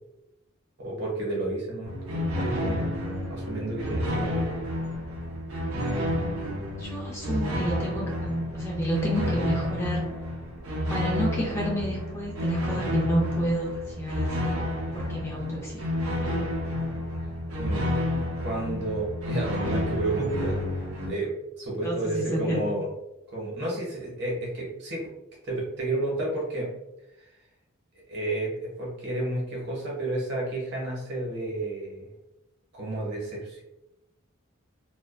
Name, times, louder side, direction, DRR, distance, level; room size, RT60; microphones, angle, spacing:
voice 1, 0.8-3.0 3.3-4.5 17.6-17.9 18.4-20.8 21.1-22.9 23.3-25.1 25.4-26.7 28.0-32.1 32.7-33.6, right 2 dB, 55° right, -3 dB, 0.9 m, -31 dB
sound 1, 1.8-21.1, left 1 dB, 85° right, 0.5 m, -30 dB
voice 2, 6.8-10.1 10.9-14.6 14.9-15.9 21.8-22.7, right 1 dB, 15° left, -3 dB, 0.4 m, -30 dB
2.3 x 2.2 x 2.4 m, 0.92 s
head